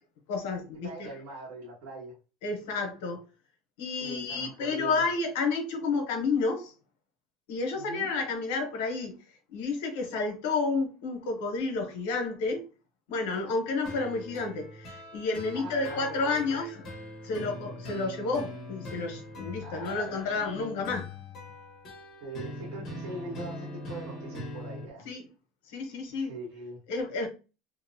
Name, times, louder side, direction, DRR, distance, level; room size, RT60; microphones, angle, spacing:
voice 1, 0.3-1.1 2.4-3.2 3.8-6.7 7.5-9.2 9.5-12.6 13.1-16.8 17.2-21.1 25.0-25.2 25.7-26.3 26.9-27.3, left 4 dB, 75° left, 0.9 m, -30 dB
voice 2, 0.8-2.2 4.0-5.0 7.7-8.1 15.5-16.6 19.6-20.4 22.2-25.1 26.2-26.8, right 2 dB, 80° right, 1.4 m, -42 dB
sound 1, 13.8-24.8, left 1 dB, 35° left, 0.9 m, -42 dB
2.8 x 2.1 x 2.7 m
cardioid pair, 165°, 0 cm